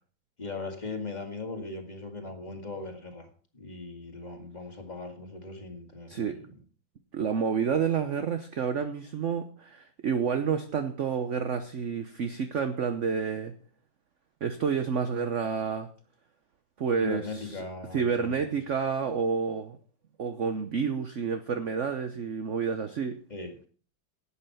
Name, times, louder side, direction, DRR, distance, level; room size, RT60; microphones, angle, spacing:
voice 1, 0.4-3.3 3.5-6.4 17.0-18.3 23.3-23.7, left 3 dB, 20° left, 4 dB, 2.1 m, -39 dB
voice 2, 7.1-13.5 14.4-15.9 16.8-17.6 17.9-19.8 20.2-23.2, right 6 dB, 50° right, 8 dB, 1.0 m, -29 dB
11.5 x 8.6 x 5.8 m, 0.42 s
omnidirectional pair, 2.1 m